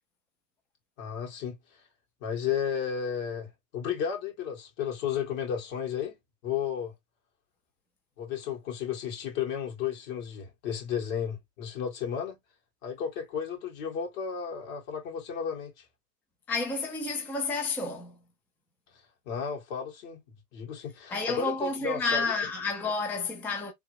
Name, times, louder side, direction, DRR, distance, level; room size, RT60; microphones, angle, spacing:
voice 1, 1.0-1.6 2.2-6.2 6.4-6.9 8.2-12.4 12.8-15.7 19.3-20.2 20.5-22.3, left 8 dB, 55° left, 2.2 m, -33 dB
voice 2, 16.5-18.1 21.1-23.7, left 3 dB, 5° left, 0.5 m, -30 dB
3.5 x 2.6 x 3.3 m
hypercardioid pair, 105°, 49 cm